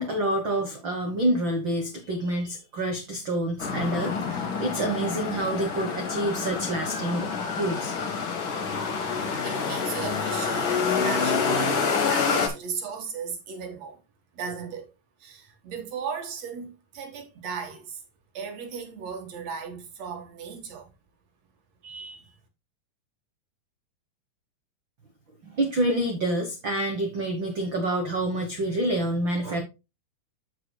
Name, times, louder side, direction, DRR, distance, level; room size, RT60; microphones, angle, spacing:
voice 1, 0.0-7.9 25.5-29.6, right 1 dB, 80° right, 1.0 m, -27 dB
sound 1, 3.6-12.5, left 5 dB, 55° left, 1.4 m, -27 dB
voice 2, 9.4-14.0 14.3-14.9 15.2-18.0 18.3-20.9 21.8-22.4, right 6 dB, 55° right, 2.2 m, -37 dB
14.0 x 4.8 x 2.2 m
omnidirectional pair, 4.2 m